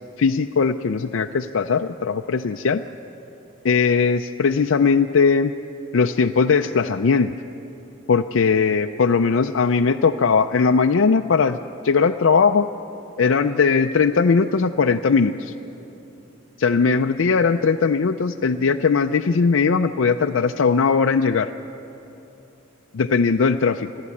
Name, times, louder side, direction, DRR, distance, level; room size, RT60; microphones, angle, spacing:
voice 1, 0.2-2.8 3.6-5.6 5.9-7.3 8.1-11.6 11.8-12.7 13.2-15.5 16.6-21.5 22.9-23.9, left 5 dB, 70° left, 5 dB, 0.5 m, -19 dB
29.5 x 12.0 x 8.5 m, 3.0 s
head